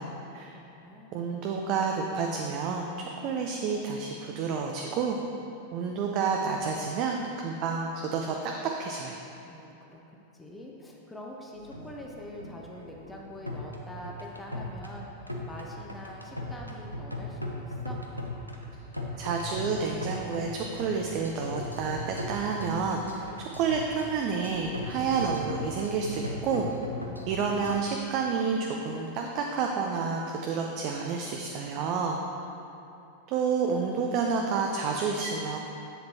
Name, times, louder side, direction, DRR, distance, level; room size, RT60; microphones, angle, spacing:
voice 1, 0.0-1.3 9.4-18.0 27.0-27.8, left 1 dB, 5° left, -2 dB, 0.8 m, -45 dB
voice 2, 1.1-5.2 5.7-8.5 8.8-9.2 19.2-26.7 27.3-32.2 33.3-35.6, right 5 dB, 40° right, 1 dB, 0.5 m, -29 dB
sound 1, 11.5-27.8, left 1 dB, 90° right, 0.6 m, -38 dB
7.6 x 7.0 x 2.8 m, 2.8 s
figure-of-eight pair, 90°, 0 cm